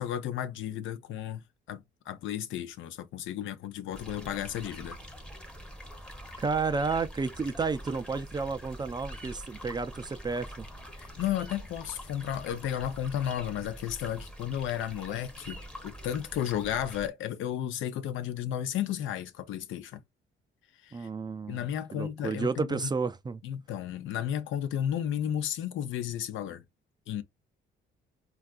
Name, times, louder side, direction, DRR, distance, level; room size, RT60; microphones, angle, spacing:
voice 1, 0.0-5.0 11.0-20.0 20.8-21.1 21.5-22.9 23.4-26.6 27.1-27.2, left 10 dB, 75° left, 0.5 m, -33 dB
sound 1, 3.9-17.1, equal, 5° left, 0.7 m, -45 dB
voice 2, 6.4-10.7 20.9-21.6 21.9-23.4, right 4 dB, 20° right, 0.3 m, -31 dB
3.4 x 2.4 x 2.3 m
cardioid pair, 90°, 20 cm